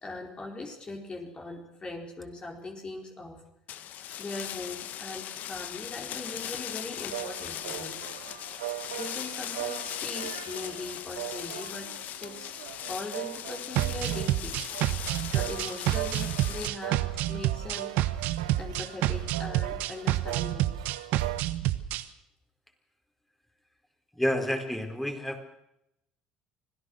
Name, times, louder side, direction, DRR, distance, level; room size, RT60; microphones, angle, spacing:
voice 1, 0.0-3.4 4.2-8.0 8.9-11.9 12.2-12.5 12.9-14.6 15.3-17.9 18.6-20.7, left 3 dB, 30° left, 1 dB, 4.4 m, -40 dB
sound 1, 3.7-16.7, left 11 dB, 60° left, 1.3 m, -39 dB
sound 2, 7.1-21.4, right 16 dB, 85° right, 0.8 m, -40 dB
sound 3, 13.8-22.0, right 14 dB, 70° right, 1.2 m, -28 dB
voice 2, 24.1-25.4, equal, 5° left, 4 dB, 4.5 m, -29 dB
25.5 x 17.0 x 6.5 m, 0.84 s
hypercardioid pair, 65°, 3 cm